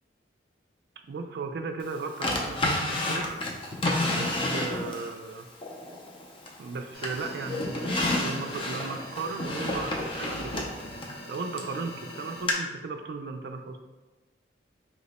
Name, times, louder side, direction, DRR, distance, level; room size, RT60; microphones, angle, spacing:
voice 1, 1.1-3.3 4.1-5.5 6.6-10.7 11.3-13.8, right 4 dB, 55° right, 6 dB, 0.3 m, -36 dB
Drawer open or close, 2.2-5.1 5.6-6.7 7.0-11.7 12.5-12.6, left 2 dB, 30° left, 0.4 m, -30 dB
sound 1, 6.9-12.4, left 1 dB, 55° left, 0.7 m, -44 dB
2.8 x 2.0 x 4.0 m, 1.1 s
head